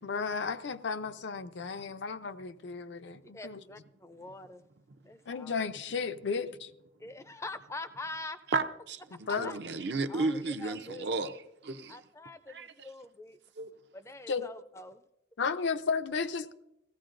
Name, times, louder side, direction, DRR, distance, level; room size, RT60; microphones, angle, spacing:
voice 1, 0.0-3.6 5.3-6.7 9.3-9.5 14.3-14.5 15.4-16.5, left 5 dB, 70° left, 10 dB, 0.5 m, -33 dB
voice 2, 3.2-4.6 5.0-5.6 7.0-8.4 9.3-9.6 10.1-11.1 11.9-13.4 13.9-15.0, left 2 dB, 15° left, 11 dB, 0.4 m, -44 dB
voice 3, 8.5-9.0 9.4-11.3 11.6-12.0 12.5-12.7 13.6-13.7, right 3 dB, 60° right, 8 dB, 0.6 m, -32 dB
17.0 x 15.0 x 2.5 m, 0.88 s
head